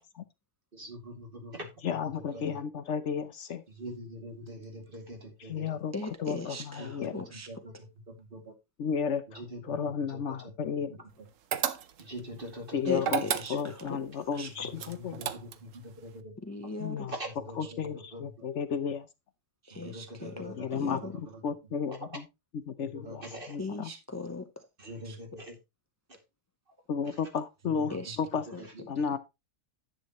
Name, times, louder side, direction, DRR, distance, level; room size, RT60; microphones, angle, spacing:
voice 1, 0.7-1.7 2.3-2.6 3.8-5.8 6.8-7.7 8.1-8.5 9.3-9.7 10.1-10.2 12.0-13.4 14.7-16.3 17.1-17.8 18.1-18.2 19.7-21.1 22.8-23.6 24.8-25.6 26.1-26.2 27.6-27.9 28.7-28.8, equal, 40° right, 2.5 m, -43 dB
voice 2, 1.8-3.6 5.4-7.2 8.8-11.0 12.7-13.2 13.5-15.2 16.8-17.2 17.6-19.1 20.5-22.3 22.5-23.9 26.9-28.5 28.9-29.2, left 6 dB, 65° left, 1.0 m, -33 dB
voice 3, 5.9-7.5 12.9-13.6 13.8-14.0 14.3-14.5 14.8-14.9 16.4-17.1 17.6-17.7 19.6-20.6 20.9-21.1 23.6-24.6 25.0-25.2 27.9-28.2, left 2 dB, 15° left, 0.6 m, -38 dB
sound 1, 11.5-12.2 13.0-13.9 14.8-15.8, right 9 dB, 70° right, 1.1 m, -32 dB
10.5 x 8.1 x 2.9 m
omnidirectional pair, 1.4 m